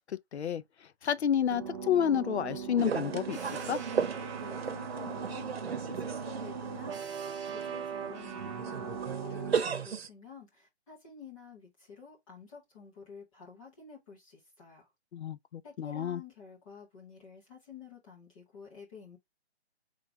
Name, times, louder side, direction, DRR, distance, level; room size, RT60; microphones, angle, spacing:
voice 1, 0.1-0.6 1.0-3.4 3.7-3.8 15.1-16.2, left 9 dB, 80° left, 0.6 m, -30 dB
sound 1, 1.5-9.6, right 6 dB, 25° right, 1.0 m, -39 dB
getting in the elevator, 2.8-10.1, right 6 dB, 65° right, 1.0 m, -36 dB
voice 2, 4.3-5.5 5.9-14.9 15.6-19.2, left 5 dB, 30° left, 2.2 m, -50 dB
3.8 x 3.5 x 3.7 m
hypercardioid pair, 170°, 33 cm